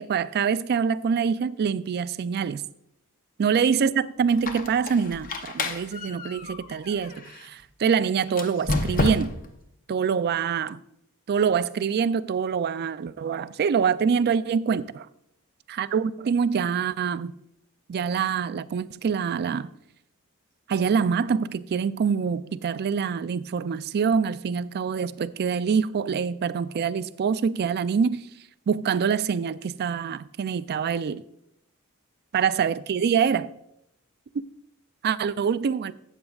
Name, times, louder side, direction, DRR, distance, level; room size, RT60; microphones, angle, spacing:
voice 1, 0.0-2.6 3.4-9.3 9.9-10.8 11.3-15.1 15.7-17.3 17.9-19.7 20.7-28.3 28.7-31.2 32.3-33.5 35.0-35.9, right 6 dB, 45° right, 0.3 m, -25 dB
Squeak, 4.3-7.5 8.3-9.6, left 2 dB, 40° left, 0.7 m, -30 dB
13.0 x 8.1 x 2.4 m
head